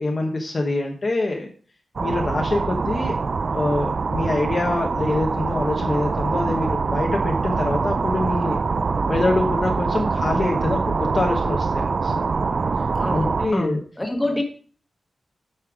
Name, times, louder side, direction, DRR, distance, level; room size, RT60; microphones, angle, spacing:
voice 1, 0.0-1.5 2.0-3.1 3.5-8.6 9.1-12.3 13.1-13.8, left 2 dB, 35° left, 1 dB, 1.0 m, -25 dB
sound 1, 2.0-13.5, right 4 dB, 40° right, 0.3 m, -24 dB
voice 2, 12.9-14.4, left 1 dB, 10° left, 3 dB, 1.4 m, -26 dB
8.6 x 5.5 x 4.8 m, 0.41 s
wide cardioid pair, 170°, 0 cm